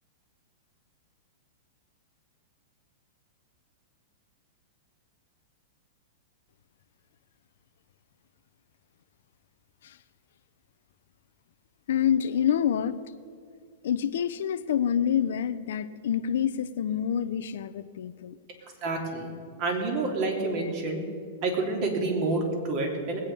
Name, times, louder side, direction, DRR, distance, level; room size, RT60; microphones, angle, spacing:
voice 1, 11.9-13.0 13.8-18.4, left 9 dB, 75° left, 13 dB, 0.7 m, -27 dB
voice 2, 18.8-19.3 19.6-21.0 21.4-23.2, right 3 dB, 45° right, 1 dB, 3.1 m, -28 dB
20.0 x 8.9 x 5.5 m, 2.2 s
hypercardioid pair, 130°, 0 cm